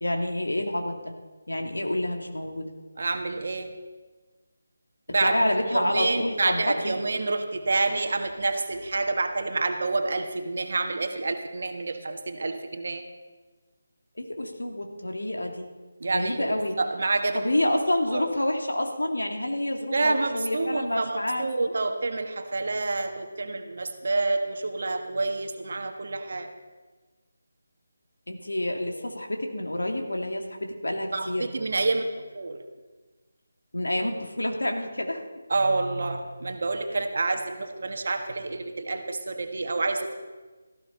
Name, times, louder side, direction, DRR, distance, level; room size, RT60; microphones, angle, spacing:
voice 1, 0.0-1.1 1.5-2.7 5.2-7.0 14.2-15.7 16.0-16.8 17.3-21.7 28.3-31.5 33.7-35.2, left 1 dB, 70° left, 3 dB, 2.3 m, -28 dB
voice 2, 3.0-3.7 5.1-13.0 16.0-17.7 18.1-18.3 19.9-26.5 31.1-32.6 35.5-40.1, right 3 dB, 50° right, 5 dB, 1.6 m, -28 dB
17.5 x 14.5 x 4.0 m, 1.3 s
figure-of-eight pair, 155°, 0 cm